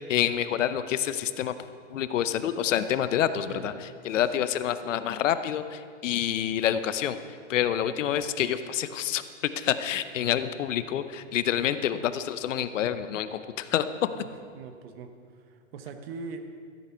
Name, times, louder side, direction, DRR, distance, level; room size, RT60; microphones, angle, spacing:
voice 1, 0.0-1.5 1.9-7.2 7.5-9.2 9.6-13.8, left 10 dB, 70° left, 12 dB, 0.8 m, -27 dB
voice 2, 4.1-4.5 14.2-14.3 14.5-15.1 15.5-16.4, right 5 dB, 50° right, 7 dB, 1.2 m, -41 dB
13.5 x 8.2 x 5.8 m, 2.2 s
hypercardioid pair, 150°, 39 cm